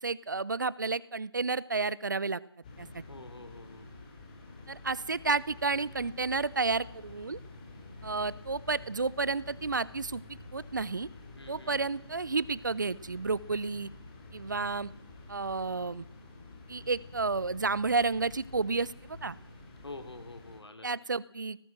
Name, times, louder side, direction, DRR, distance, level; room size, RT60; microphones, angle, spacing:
voice 1, 0.0-2.4 2.8-3.0 4.7-7.4 8.0-11.1 11.5-13.9 14.3-14.9 15.3-16.0 16.7-19.4 20.8-21.6, right 4 dB, 45° right, 20 dB, 0.8 m, -31 dB
sound 1, 2.6-20.6, left 2 dB, 20° left, 3.7 m, -49 dB
voice 2, 3.1-3.9 11.4-11.9 19.8-21.0, left 2 dB, 70° left, 7 dB, 4.2 m, -46 dB
19.5 x 18.5 x 7.9 m, 0.68 s
figure-of-eight pair, 165°, 14 cm